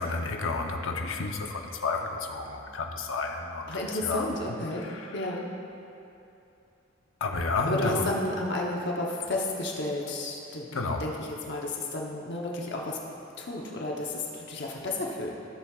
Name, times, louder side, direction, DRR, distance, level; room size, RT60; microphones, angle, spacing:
voice 1, 0.0-3.7 4.0-4.3 4.8-5.3 7.2-8.1 10.7-11.1, left 3 dB, 85° left, 3 dB, 0.8 m, -31 dB
voice 2, 3.7-4.9 5.1-5.4 7.7-13.0 13.4-15.3, left 2 dB, 60° left, -2 dB, 0.9 m, -32 dB
16.0 x 7.4 x 2.4 m, 2.8 s
head